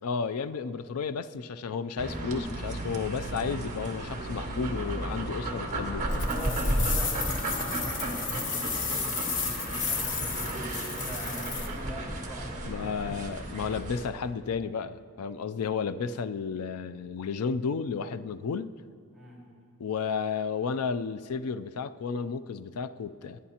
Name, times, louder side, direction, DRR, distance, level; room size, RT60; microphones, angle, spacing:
voice 1, 0.0-6.3 12.7-18.7 19.8-23.4, left 5 dB, 80° left, 13 dB, 0.4 m, -32 dB
sound 1, 2.0-14.0, right 1 dB, 35° right, 1.6 m, -33 dB
sound 2, 6.1-11.7, left 5 dB, 55° left, 1.0 m, -33 dB
voice 2, 6.1-10.3 10.9-12.9 19.1-19.4, right 1 dB, ahead, -7 dB, 4.2 m, -43 dB
29.0 x 9.9 x 2.9 m, 2.3 s
head